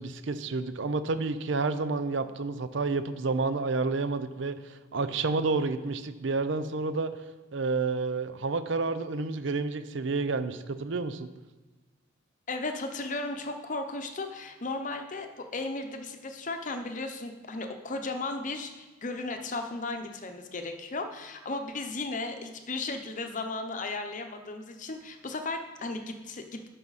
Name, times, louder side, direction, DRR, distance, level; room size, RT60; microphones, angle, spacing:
voice 1, 0.0-7.1 7.5-11.3, right 3 dB, 65° right, 12 dB, 0.6 m, -30 dB
voice 2, 12.5-26.7, left 3 dB, 40° left, 6 dB, 0.8 m, -35 dB
12.0 x 5.7 x 4.1 m, 1.2 s
head